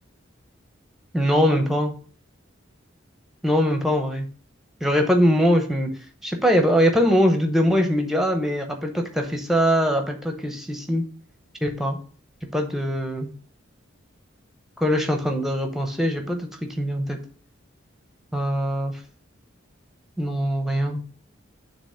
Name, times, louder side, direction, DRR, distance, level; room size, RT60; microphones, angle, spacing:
voice 1, 1.1-1.9 3.4-4.3 4.8-5.9 6.2-11.0 11.6-12.0 12.5-13.3 14.8-16.5 16.8-17.2 18.3-18.9 20.2-21.0, equal, ahead, 4 dB, 0.8 m, -22 dB
6.9 x 3.0 x 5.6 m, 0.42 s
head